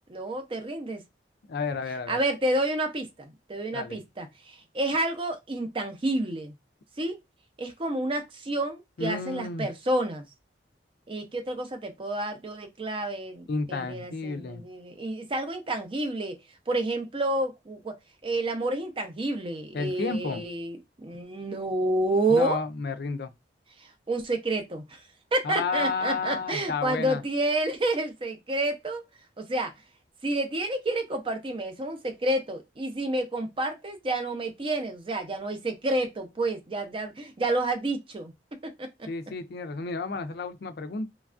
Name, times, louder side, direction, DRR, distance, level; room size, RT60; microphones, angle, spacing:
voice 1, 0.1-1.0 2.1-6.5 7.0-7.2 7.6-10.2 11.1-16.4 16.7-17.9 18.2-22.6 24.1-25.0 25.3-29.0 29.4-29.7 30.2-38.3 38.8-38.9, right 1 dB, 30° right, 0.5 m, -29 dB
voice 2, 1.5-2.2 3.7-4.0 9.0-9.7 13.5-14.6 19.7-20.4 22.3-23.3 25.4-27.2 39.1-41.1, left 4 dB, 60° left, 0.4 m, -31 dB
3.1 x 2.3 x 2.4 m
head